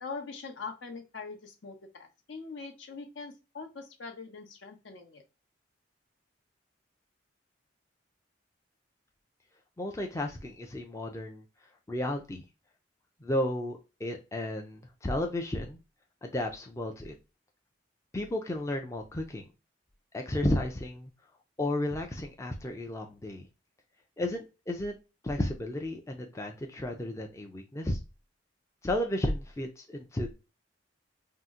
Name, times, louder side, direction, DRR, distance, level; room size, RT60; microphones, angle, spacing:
voice 1, 0.0-5.2, left 4 dB, 75° left, 4 dB, 0.8 m, -42 dB
voice 2, 9.8-11.4 11.9-12.4 13.2-15.8 16.2-17.1 18.1-19.4 20.1-21.1 21.6-23.5 24.2-24.9 25.2-28.0 28.8-30.3, left 1 dB, 15° left, 2 dB, 0.4 m, -33 dB
2.7 x 2.1 x 3.5 m, 0.29 s
head